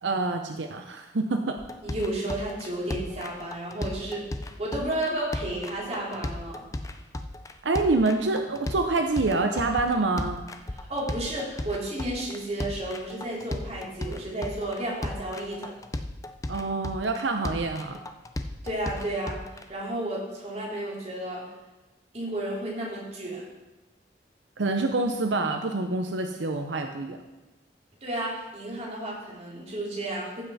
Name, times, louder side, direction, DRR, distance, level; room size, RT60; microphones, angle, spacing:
voice 1, 0.0-1.6 7.6-10.4 16.5-18.0 24.6-27.2, right 3 dB, 90° right, 5 dB, 0.7 m, -26 dB
sound 1, 1.6-19.6, left 1 dB, 20° left, 0.5 m, -36 dB
voice 2, 1.8-4.3 4.6-6.6 10.9-15.7 18.6-19.4 19.7-21.4 22.1-23.4 28.0-30.4, right 1 dB, 35° right, -5 dB, 3.0 m, -32 dB
15.0 x 5.6 x 4.1 m, 1.1 s
head